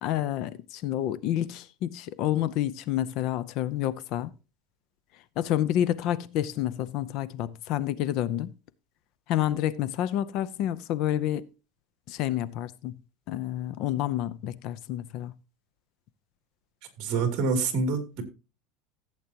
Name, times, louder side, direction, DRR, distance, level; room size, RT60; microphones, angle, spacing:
voice 1, 0.0-4.3 5.4-8.5 9.3-11.5 12.1-12.9 13.3-15.3, left 12 dB, 45° left, 0.6 m, -29 dB
voice 2, 17.0-18.2, right 4 dB, 40° right, 2.8 m, -26 dB
15.0 x 8.1 x 2.9 m
supercardioid pair, 170°, 0 cm